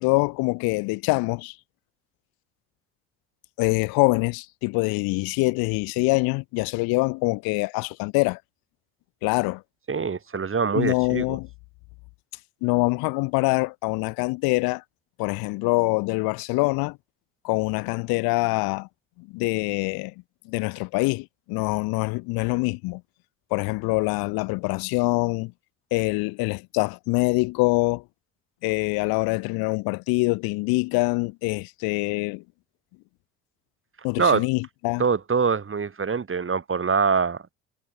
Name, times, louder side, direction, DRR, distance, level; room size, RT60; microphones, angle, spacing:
voice 1, 0.0-1.6 3.6-8.4 9.2-9.6 10.7-11.5 12.6-14.8 15.2-17.0 17.4-18.9 19.2-20.1 20.4-23.0 23.5-25.5 25.9-28.0 28.6-32.4 34.0-35.0, left 26 dB, 70° left, 2.9 m, -24 dB
voice 2, 9.9-11.4 34.2-34.4 35.0-37.5, right 5 dB, 35° right, 5.8 m, -24 dB
figure-of-eight pair, 50°, 38 cm